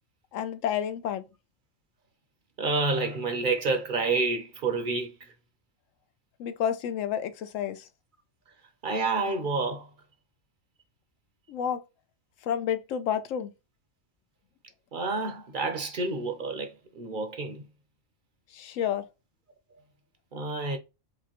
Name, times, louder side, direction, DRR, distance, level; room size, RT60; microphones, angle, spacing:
voice 1, 0.3-1.2 6.4-7.8 11.5-11.8 12.4-13.5 18.5-19.1, left 9 dB, 80° left, 1.0 m, -30 dB
voice 2, 2.6-5.3 8.8-9.9 14.9-17.7 20.3-20.8, right 3 dB, 50° right, 0.7 m, -29 dB
4.9 x 2.2 x 2.9 m
omnidirectional pair, 1.3 m